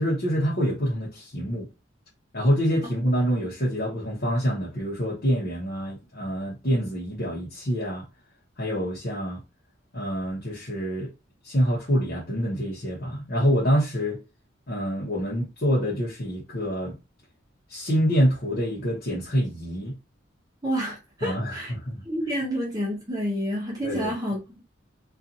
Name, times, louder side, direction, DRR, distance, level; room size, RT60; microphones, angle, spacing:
voice 1, 0.0-1.7 2.3-8.0 8.6-9.4 9.9-11.1 11.4-14.2 14.7-17.0 17.7-20.0 21.2-22.0 23.8-24.1, equal, 50° left, 0.9 m, -26 dB
voice 2, 20.6-21.7 22.0-24.6, equal, 20° right, 0.8 m, -29 dB
2.5 x 2.4 x 2.7 m
head